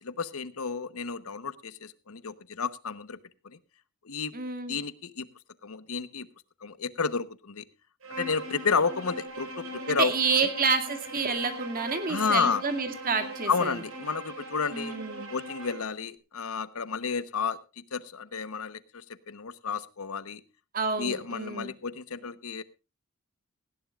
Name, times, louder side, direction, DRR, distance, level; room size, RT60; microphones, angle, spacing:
voice 1, 0.0-3.2 3.4-3.6 4.0-4.3 4.7-5.3 5.6-6.3 6.6-7.7 8.2-10.1 12.1-12.6 13.5-14.9 15.3-20.4 21.0-22.6, left 5 dB, 85° left, 13 dB, 1.0 m, -31 dB
voice 2, 4.3-4.8 9.9-13.8 14.7-15.3 20.7-21.7, right 4 dB, 40° right, 7 dB, 2.3 m, -29 dB
Bowed string instrument, 8.0-15.9, right 1 dB, 75° right, 4.7 m, -40 dB
19.0 x 16.0 x 2.4 m, 0.30 s
head